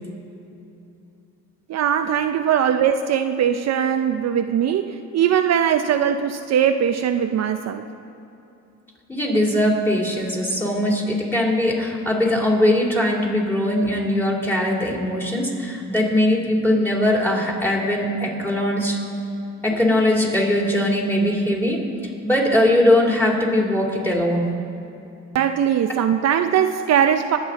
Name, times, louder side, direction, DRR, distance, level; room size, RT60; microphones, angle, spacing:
voice 1, 1.7-7.9 25.3-27.4, right 9 dB, 60° right, 7 dB, 0.6 m, -20 dB
voice 2, 9.1-19.0 19.6-21.8 22.2-24.5, left 1 dB, 5° left, -2 dB, 3.2 m, -20 dB
21.5 x 8.3 x 4.0 m, 2.8 s
cardioid pair, 90°, 30 cm